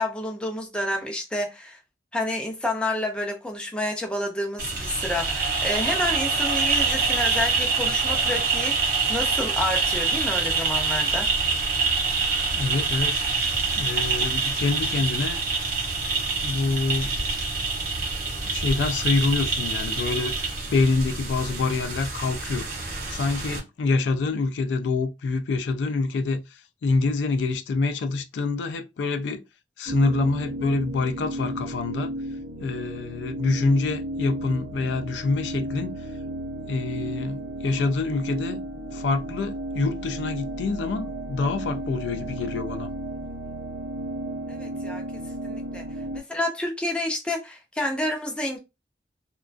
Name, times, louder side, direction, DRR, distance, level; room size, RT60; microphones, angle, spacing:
voice 1, 0.0-1.8 2.1-11.3 44.5-45.0 45.4-45.8 46.1-48.6, left 1 dB, 5° left, 0.4 m, -29 dB
sound 1, 4.6-23.6, right 4 dB, 50° right, 0.7 m, -26 dB
voice 2, 12.5-13.3 13.8-15.4 16.4-17.1 18.4-22.7 23.1-29.4 29.8-32.1 32.6-36.0 36.7-38.6 38.9-42.9, left 3 dB, 90° left, 0.3 m, -26 dB
sound 2, 29.9-46.2, right 1 dB, 85° right, 0.6 m, -34 dB
2.3 x 2.2 x 2.4 m
head